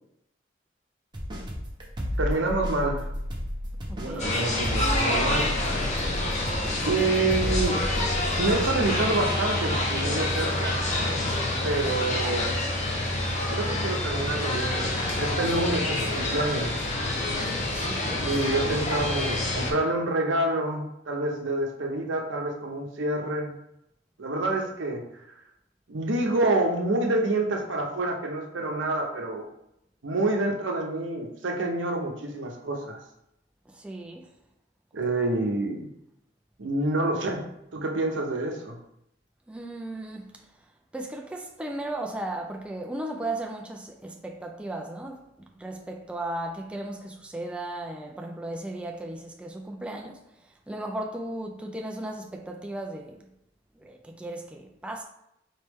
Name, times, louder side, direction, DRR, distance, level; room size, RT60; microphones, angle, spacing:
sound 1, 1.1-10.3 10.6-10.7, equal, 25° right, 0.9 m, -33 dB
voice 1, 2.2-3.1 4.0-5.5 6.8-7.8 8.3-10.9 11.6-12.6 13.5-16.7 18.2-23.5 24.2-25.0 25.9-29.5 30.0-33.0 34.9-35.9 36.6-37.4 37.7-38.8, right 2 dB, 75° right, 0.8 m, -27 dB
voice 2, 3.9-4.4 6.4-6.8 12.0-12.2 17.7-18.3 33.7-34.3 39.5-40.4 40.9-45.2 45.6-50.2 50.7-53.2 53.8-55.0, right 1 dB, 5° right, 0.3 m, -36 dB
sound 2, 4.2-19.7, left 1 dB, 40° left, 0.8 m, -27 dB
4.3 x 3.1 x 3.5 m
head